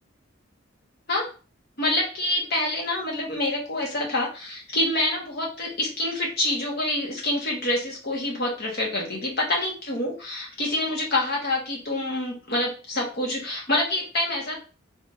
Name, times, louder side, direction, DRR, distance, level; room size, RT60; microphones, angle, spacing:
voice 1, 1.8-14.6, left 1 dB, 55° left, -2 dB, 1.4 m, -27 dB
3.5 x 3.4 x 2.7 m, 0.34 s
head